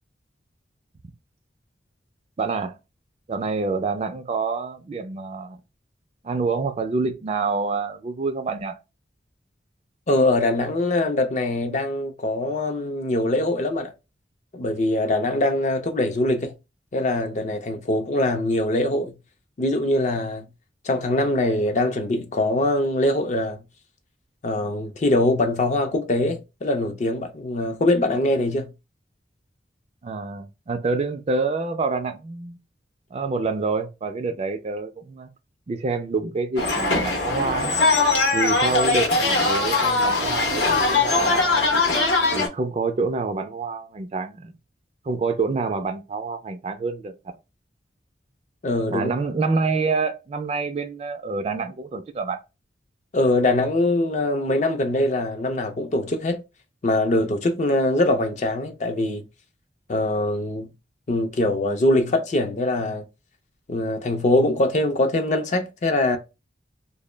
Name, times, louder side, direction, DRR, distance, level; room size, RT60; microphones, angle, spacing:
voice 1, 2.4-2.7 3.3-5.6 6.2-8.8 30.0-32.6 33.1-35.3 35.7-37.7 38.3-41.8 42.3-44.5 45.1-47.3 48.9-52.4, right 4 dB, 35° right, 0.3 m, -27 dB
voice 2, 10.1-13.9 14.5-16.5 16.9-19.1 19.6-20.5 20.8-23.6 24.4-28.7 48.6-49.1 53.1-56.4 56.8-59.2 59.9-60.7 61.1-63.0 63.7-66.2, left 1 dB, 40° left, 0.4 m, -23 dB
sound 1, 36.6-42.5, left 3 dB, 70° left, 0.8 m, -21 dB
2.1 x 2.0 x 3.2 m
head